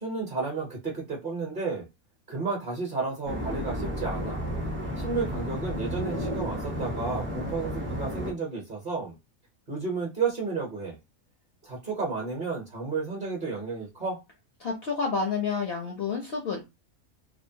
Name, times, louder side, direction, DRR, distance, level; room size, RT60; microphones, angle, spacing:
voice 1, 0.0-1.9 2.3-4.4 5.0-9.2 9.7-11.0 11.6-14.2, right 4 dB, 40° right, 0.9 m, -32 dB
sound 1, 3.3-8.3, equal, 15° right, 0.5 m, -32 dB
voice 2, 14.6-16.6, left 5 dB, 60° left, 0.6 m, -29 dB
2.8 x 2.0 x 2.7 m
omnidirectional pair, 1.5 m